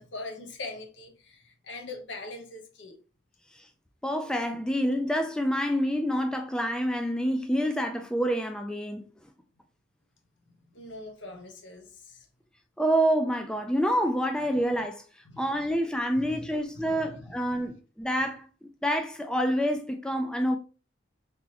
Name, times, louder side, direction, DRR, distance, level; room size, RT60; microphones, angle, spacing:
voice 1, 0.0-3.0 10.7-12.3 15.2-15.6 16.1-17.7, left 2 dB, 75° left, 0.9 m, -42 dB
voice 2, 4.0-9.1 12.8-15.0 15.4-20.6, equal, 5° left, 0.3 m, -27 dB
4.1 x 3.4 x 2.8 m
head